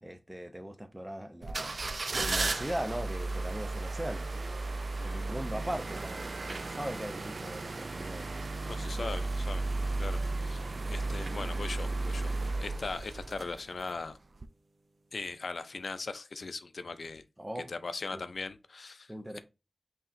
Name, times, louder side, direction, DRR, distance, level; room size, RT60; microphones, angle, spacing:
voice 1, 0.0-1.8 2.1-4.5 5.0-8.3 8.7-9.3 17.4-17.7 18.1-18.2 19.1-19.4, right 1 dB, 15° right, 0.6 m, -40 dB
sound 1, 1.4-13.9 14.4-14.5, right 3 dB, 65° right, 0.3 m, -34 dB
voice 2, 5.0-5.3 8.7-9.6 10.0-12.3 12.6-14.2 15.1-17.2 17.7-19.4, left 3 dB, 80° left, 0.4 m, -39 dB
5.5 x 2.9 x 2.5 m
wide cardioid pair, 70°, 0 cm